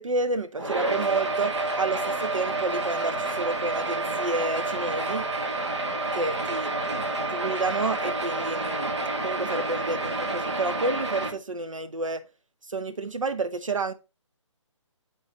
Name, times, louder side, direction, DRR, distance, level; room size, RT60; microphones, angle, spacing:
voice 1, 0.0-5.2 6.1-8.9 9.2-12.2 12.7-13.9, right 3 dB, 85° right, 0.6 m, -30 dB
sound 1, 0.6-11.3, right 2 dB, 60° right, 1.5 m, -29 dB
6.2 x 4.0 x 3.9 m
figure-of-eight pair, 140°, 16 cm